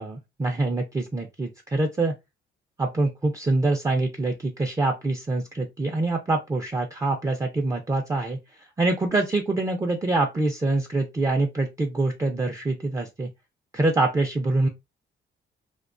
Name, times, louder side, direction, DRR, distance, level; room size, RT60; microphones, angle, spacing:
voice 1, 0.0-2.1 2.8-8.4 8.8-13.3 13.7-14.7, right 2 dB, 15° right, 0.4 m, -25 dB
2.4 x 2.2 x 2.4 m
cardioid pair, 90°, 20 cm